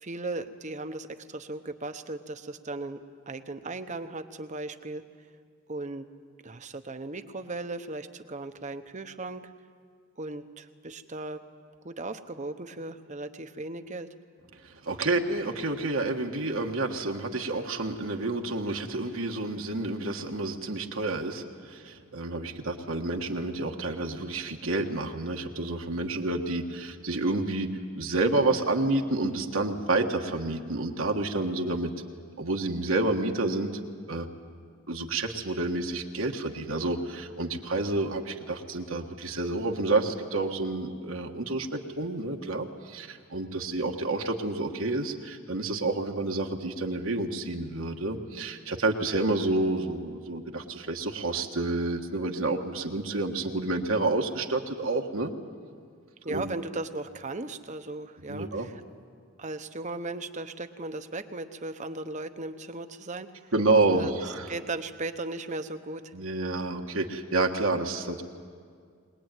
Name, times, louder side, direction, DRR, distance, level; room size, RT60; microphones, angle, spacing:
voice 1, 0.0-3.0 3.3-5.0 5.7-6.1 6.4-9.5 10.2-11.4 11.8-14.1 56.2-58.8 59.4-63.5 63.9-66.1, right 2 dB, 35° right, 9 dB, 0.9 m, -37 dB
voice 2, 14.6-27.7 27.9-31.9 32.4-33.7 34.1-34.3 34.9-55.3 56.3-56.4 58.3-58.7 63.5-64.5 66.1-68.2, right 2 dB, 70° right, 2 dB, 1.5 m, -29 dB
22.0 x 20.5 x 9.1 m, 2.1 s
head